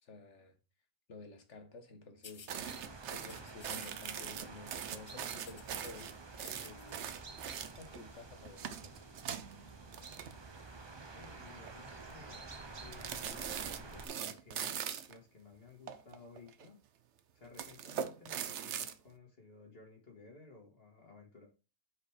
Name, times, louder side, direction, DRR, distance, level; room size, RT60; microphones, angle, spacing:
voice 1, 0.0-0.5 1.1-2.5 3.1-6.2 6.6-7.2 7.6-9.2, left 3 dB, 90° left, 1.6 m, -52 dB
sound 1, 2.2-2.6 3.2-4.1 4.4-4.6 4.9-6.0 6.4-7.0, left 5 dB, 40° left, 0.4 m, -55 dB
sound 2, 2.5-14.1, right 3 dB, 25° right, 0.7 m, -50 dB
sound 3, 2.5-8.0 8.4-10.8 11.0-11.3 11.7-12.1 12.9-15.2 15.9-16.7 17.4-18.9, right 8 dB, 85° right, 1.0 m, -41 dB
voice 2, 11.1-12.5 12.8-16.8 17.3-21.5, left 4 dB, 55° left, 2.2 m, -57 dB
4.9 x 4.9 x 4.9 m
omnidirectional pair, 1.2 m